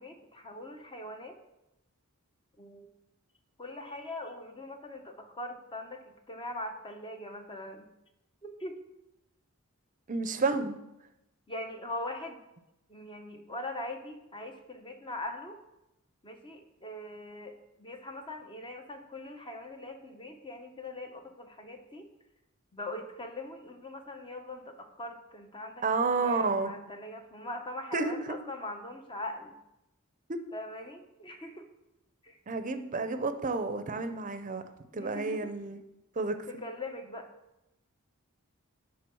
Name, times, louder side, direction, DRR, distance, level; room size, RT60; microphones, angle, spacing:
voice 1, 0.0-1.4 2.6-2.9 3.6-7.9 8.4-8.8 11.5-12.4 12.9-15.6 16.2-22.1 22.7-25.9 26.1-29.6 30.5-31.7 32.2-32.4 34.9-35.5 36.5-37.3, left 1 dB, 25° left, 5 dB, 0.9 m, -41 dB
voice 2, 10.1-10.8 25.8-26.7 27.9-28.4 30.3-30.4 32.5-34.6 34.9-35.8 36.2-36.3, right 3 dB, 35° right, 9 dB, 0.6 m, -30 dB
10.5 x 3.6 x 6.2 m, 0.90 s
head